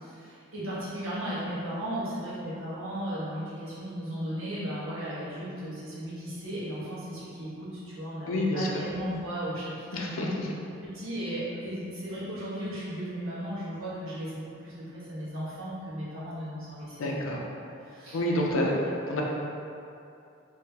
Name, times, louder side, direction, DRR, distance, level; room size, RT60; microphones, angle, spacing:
voice 1, 0.0-9.9 10.2-10.5 10.8-17.4 17.8-18.5, equal, 80° right, -10 dB, 1.3 m, -36 dB
voice 2, 8.3-8.8 9.9-10.5 17.0-17.4 18.1-18.8 19.1-19.2, left 1 dB, 75° left, -2 dB, 0.5 m, -28 dB
3.7 x 3.0 x 2.8 m, 2.7 s
head